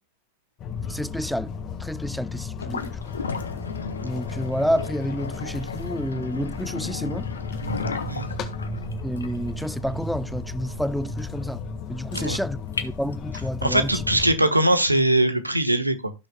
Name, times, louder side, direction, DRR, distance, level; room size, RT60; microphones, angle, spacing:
sound 1, 0.6-14.4, left 6 dB, 30° left, 1.5 m, -34 dB
voice 1, 0.9-1.5 1.8-3.0 4.0-7.3 9.0-11.6 11.9-14.0, equal, ahead, 0.5 m, -29 dB
sound 2, 2.6-13.6, left 5 dB, 70° left, 1.2 m, -35 dB
sound 3, 7.5-12.7, right 11 dB, 45° right, 2.3 m, -39 dB
voice 2, 13.6-16.1, right 1 dB, 85° right, 1.3 m, -21 dB
16.0 x 6.5 x 2.3 m
figure-of-eight pair, 90°, 0 cm